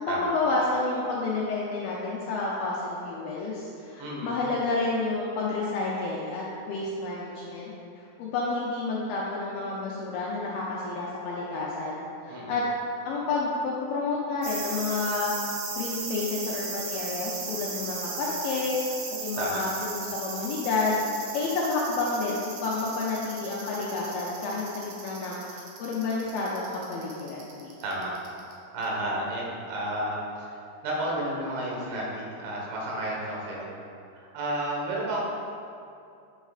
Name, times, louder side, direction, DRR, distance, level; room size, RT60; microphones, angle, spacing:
voice 1, 0.0-7.7 8.2-12.6 13.0-15.3 15.8-19.0 19.2-21.0 21.3-27.7, left 3 dB, 80° left, -5 dB, 2.1 m, -30 dB
voice 2, 4.0-4.3 12.3-12.6 19.4-19.6 27.8-28.1 28.7-30.6 30.8-33.7 34.1-35.2, right 1 dB, 85° right, -3 dB, 3.6 m, -31 dB
sound 1, 14.4-28.5 28.8-28.9, right 4 dB, 70° right, 2.1 m, -36 dB
8.5 x 8.0 x 2.4 m, 2.5 s
omnidirectional pair, 4.9 m